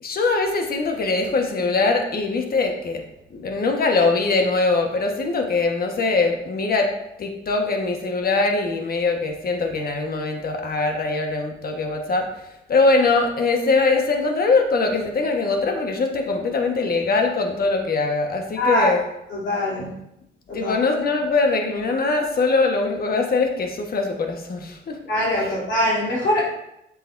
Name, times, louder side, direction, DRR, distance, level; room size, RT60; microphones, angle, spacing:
voice 1, 0.0-3.0 3.3-6.9 7.2-12.3 12.7-19.0 20.5-25.0 25.4-25.5, left 3 dB, 50° left, 3 dB, 1.4 m, -22 dB
voice 2, 18.6-19.0 19.3-19.9 20.5-20.7 25.0-26.4, left 1 dB, 65° left, -6 dB, 3.1 m, -22 dB
7.8 x 7.6 x 2.6 m, 0.83 s
cardioid pair, 90°, 20 cm